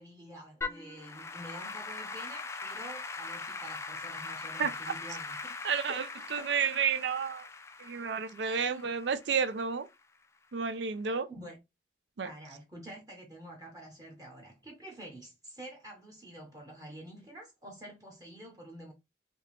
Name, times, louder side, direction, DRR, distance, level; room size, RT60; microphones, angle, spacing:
voice 1, 0.0-5.6 5.9-6.8 8.4-8.9 11.3-11.6 12.2-18.9, right 1 dB, 20° right, 0.8 m, -48 dB
Applause / Keyboard (musical), 0.6-9.9, left 4 dB, 15° left, 0.3 m, -41 dB
voice 2, 5.6-6.1 6.3-7.5 7.8-9.9 10.5-11.3 12.2-12.3, right 6 dB, 80° right, 0.5 m, -31 dB
3.4 x 2.8 x 3.0 m
head